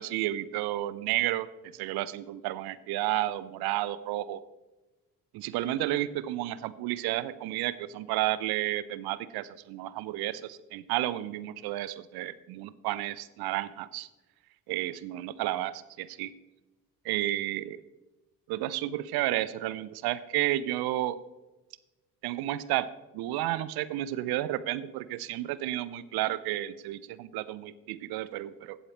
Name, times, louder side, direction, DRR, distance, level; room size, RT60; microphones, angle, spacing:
voice 1, 0.0-1.5 1.7-4.4 5.3-14.1 14.7-16.3 17.0-17.8 18.5-21.2 22.2-28.8, right 14 dB, 60° right, 16 dB, 0.7 m, -32 dB
16.0 x 7.9 x 3.0 m, 1.1 s
figure-of-eight pair, 45°, 44 cm